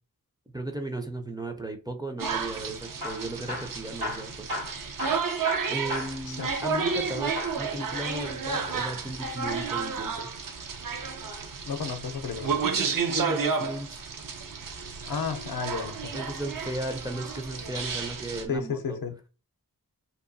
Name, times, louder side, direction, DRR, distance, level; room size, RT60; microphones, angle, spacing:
voice 1, 0.5-4.5 5.7-10.3 12.6-14.0 16.1-19.0, right 2 dB, 10° right, 0.4 m, -35 dB
sound 1, 2.2-18.4, right 5 dB, 65° right, 0.5 m, -32 dB
Hammer / Drill, 2.8-7.1 7.3-7.7 8.5-9.9 11.7-12.9 14.6-15.1 15.8-16.6 17.3-17.5 17.8-17.9 18.6-18.7, left 1 dB, 80° right, 1.3 m, -38 dB
voice 2, 11.7-12.5 15.1-16.0 18.5-19.1, left 5 dB, 75° left, 0.5 m, -32 dB
2.7 x 2.2 x 2.5 m
wide cardioid pair, 45°, 36 cm